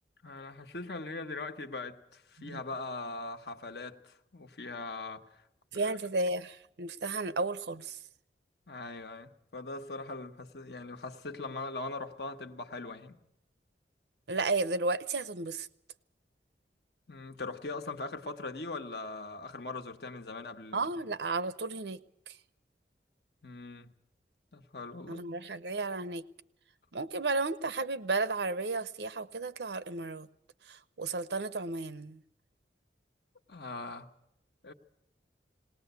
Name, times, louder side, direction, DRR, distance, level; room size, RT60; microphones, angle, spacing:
voice 1, 0.2-5.4 5.7-5.9 8.7-13.2 17.1-20.8 23.4-23.9 24.5-25.3 33.5-34.1 34.6-34.7, left 3 dB, 70° left, 1.3 m, -41 dB
voice 2, 5.7-8.0 14.3-15.7 20.7-22.0 22.3-22.4 25.1-26.3 26.9-30.3 30.7-32.2, right 3 dB, 75° right, 0.8 m, -33 dB
19.0 x 19.0 x 8.1 m
head